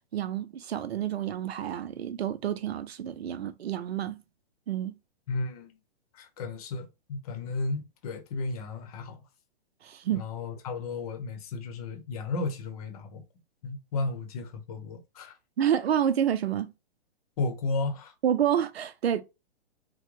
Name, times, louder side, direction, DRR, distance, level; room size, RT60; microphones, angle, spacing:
voice 1, 0.1-4.2 4.7-5.0 9.8-10.2 15.6-16.7 18.2-19.2, right 9 dB, 75° right, 0.7 m, -28 dB
voice 2, 5.3-5.8 6.1-9.2 10.1-13.2 13.6-15.3 17.4-18.1, left 3 dB, 35° left, 0.9 m, -33 dB
3.8 x 2.2 x 3.1 m
hypercardioid pair, 160°, 31 cm